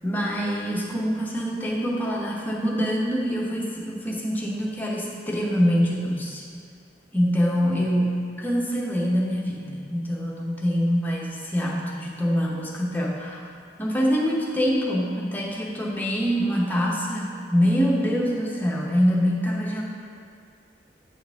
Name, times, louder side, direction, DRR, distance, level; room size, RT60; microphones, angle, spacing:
voice 1, 0.0-6.4 7.1-13.4 13.8-19.8, equal, 10° left, -4 dB, 0.7 m, -25 dB
8.6 x 4.6 x 3.4 m, 2.2 s
head